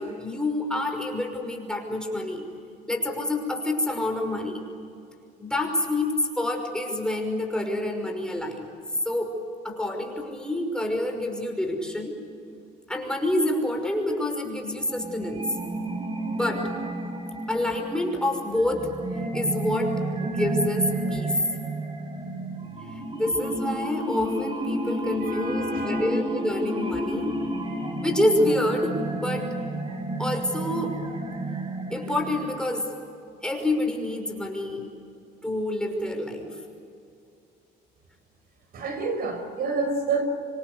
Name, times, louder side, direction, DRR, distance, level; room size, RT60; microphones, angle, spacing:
voice 1, 0.0-2.5 2.9-4.6 5.4-8.7 9.0-9.4 9.6-12.1 12.9-15.4 16.3-16.7 17.5-18.9 19.3-21.4 22.9-27.3 28.0-29.5 30.2-31.0 31.9-32.9 33.4-34.9 35.4-36.6, left 1 dB, 5° left, 2 dB, 5.6 m, -27 dB
sound 1, 14.9-32.8, right 1 dB, 30° right, 4.7 m, -31 dB
voice 2, 25.2-26.2 38.7-40.2, right 4 dB, 65° right, 6 dB, 5.5 m, -29 dB
27.0 x 25.5 x 8.1 m, 2.5 s
cardioid pair, 110°, 17 cm